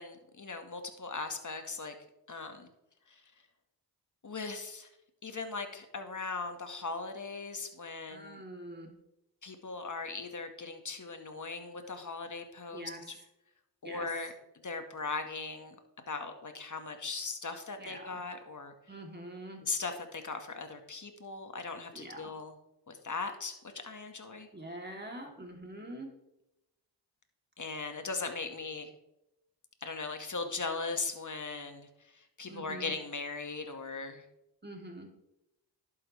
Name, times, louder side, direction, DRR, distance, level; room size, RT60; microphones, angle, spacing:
voice 1, 0.0-1.9 2.3-2.7 3.1-3.2 4.2-4.9 5.2-8.4 9.4-13.2 13.8-14.3 14.6-15.7 16.1-18.7 19.6-22.5 22.9-24.5 27.6-28.9 29.8-34.2, left 4 dB, 45° left, 6 dB, 2.0 m, -39 dB
voice 2, 8.1-8.9 12.7-13.1 13.8-14.3 17.8-18.2 18.9-19.6 21.9-22.3 24.5-26.1 32.5-32.9 34.6-35.1, right 1 dB, 25° right, 1 dB, 3.5 m, -45 dB
11.5 x 9.3 x 3.5 m, 0.86 s
cardioid pair, 50°, 42 cm